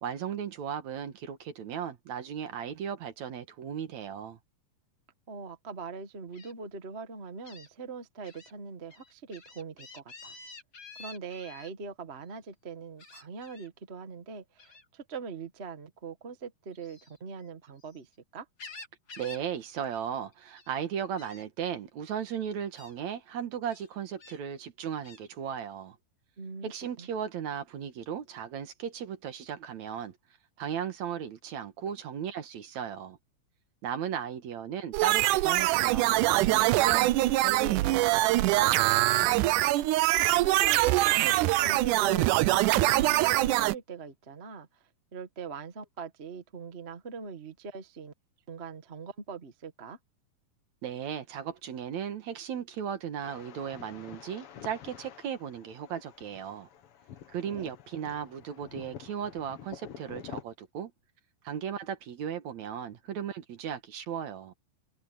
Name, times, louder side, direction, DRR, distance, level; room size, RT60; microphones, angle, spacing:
voice 1, 0.0-4.4 19.2-26.0 26.6-30.1 30.6-33.2 33.8-38.2 50.8-56.7 57.3-60.9 61.4-64.5, right 8 dB, 60° right, 2.5 m, -36 dB
voice 2, 5.3-10.4 11.0-18.5 26.4-26.7 27.0-27.1 38.8-39.9 40.3-44.7 45.1-48.1 48.5-50.0 57.4-57.7, right 5 dB, 45° right, 0.8 m, -42 dB
Gull seagull, 6.3-6.5 7.4-7.7 8.2-8.5 8.9-11.7 13.0-13.7 14.6-14.9 16.7-18.0 18.4-19.5 19.7-20.0 20.3-20.8 21.2-21.4 22.2-22.3 22.8-22.9 23.7-24.4 25.0-25.2, left 3 dB, 35° left, 4.0 m, -49 dB
sound 1, 34.9-43.7, right 17 dB, 80° right, 1.9 m, -24 dB
sound 2, 53.2-60.4, left 9 dB, 55° left, 1.7 m, -48 dB
omnidirectional pair, 4.0 m